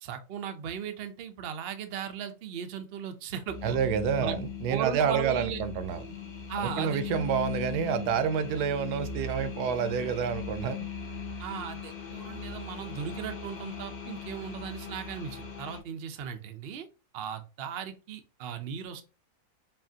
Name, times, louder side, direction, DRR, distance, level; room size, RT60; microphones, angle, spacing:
voice 1, 0.0-3.8 4.2-4.4 4.7-5.6 6.5-7.0 11.4-16.9 17.1-19.0, right 8 dB, 65° right, 7 dB, 0.6 m, -37 dB
sound 1, 3.5-15.8, left 6 dB, 45° left, 0.6 m, -39 dB
voice 2, 3.6-6.0 6.6-10.8, right 7 dB, 85° right, 11 dB, 1.2 m, -28 dB
5.6 x 2.5 x 2.7 m, 0.32 s
omnidirectional pair, 1.7 m